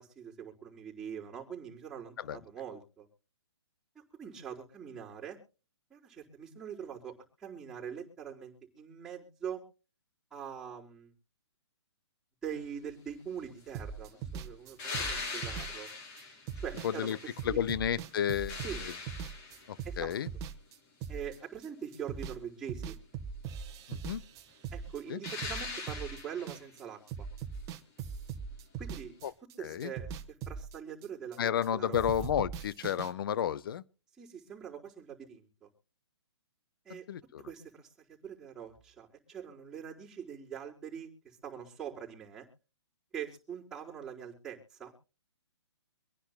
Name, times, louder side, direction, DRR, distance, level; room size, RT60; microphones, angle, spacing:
voice 1, 0.0-3.1 3.9-5.4 5.9-9.6 10.3-11.1 12.4-15.9 16.6-17.2 17.5-17.6 18.6-18.8 19.8-20.1 21.1-23.0 24.7-27.3 28.8-29.1 29.6-32.0 34.2-35.7 36.8-37.0 37.4-37.9 38.2-42.5 43.1-44.9, right 8 dB, 5° right, 4.3 m, -43 dB
sound 1, 13.7-21.7 21.9-22.4 22.7-26.8 27.1-31.7 31.9-33.1, right 6 dB, 25° right, 1.3 m, -41 dB
sound 2, 14.8-17.7 18.1-19.9 25.2-26.7 29.2-29.3, left 4 dB, 35° left, 4.0 m, -41 dB
voice 2, 16.8-17.2 17.4-18.9 19.7-20.3 23.9-24.2 25.1-25.2 29.2-29.3 29.6-29.9 31.4-33.8 36.9-37.4, left 9 dB, 50° left, 0.7 m, -32 dB
25.5 x 10.0 x 2.2 m
hypercardioid pair, 135°, 15 cm